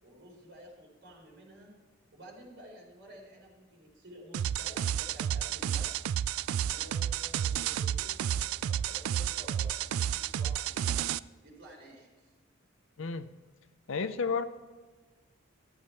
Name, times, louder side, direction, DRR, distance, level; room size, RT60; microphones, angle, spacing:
voice 1, 0.0-1.7 2.1-5.9 6.6-12.3, right 1 dB, 55° right, -3 dB, 4.5 m, -52 dB
sound 1, 4.3-11.2, right 10 dB, 85° right, 0.3 m, -31 dB
voice 2, 13.0-13.3 13.9-14.4, left 5 dB, 65° left, 10 dB, 0.6 m, -31 dB
14.0 x 8.8 x 4.5 m, 1.4 s
head